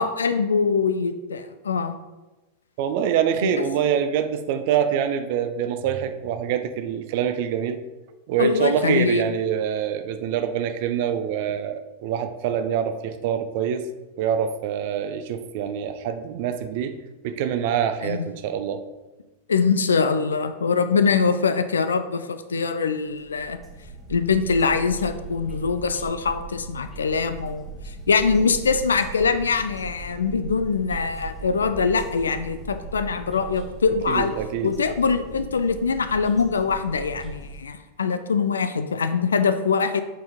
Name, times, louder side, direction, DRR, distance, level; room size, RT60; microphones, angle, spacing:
voice 1, 0.0-1.9 3.4-3.6 8.4-9.2 18.0-18.3 19.5-23.6 24.1-34.3 34.6-40.0, left 5 dB, 70° left, 10 dB, 0.4 m, -23 dB
voice 2, 2.8-7.8 8.3-13.9 14.2-17.0 17.2-18.8 34.1-34.7, right 8 dB, 50° right, 9 dB, 0.5 m, -25 dB
sound 1, 23.1-37.6, right 3 dB, 10° left, 1.3 m, -39 dB
7.3 x 4.4 x 3.6 m, 1.1 s
figure-of-eight pair, 90°, 0 cm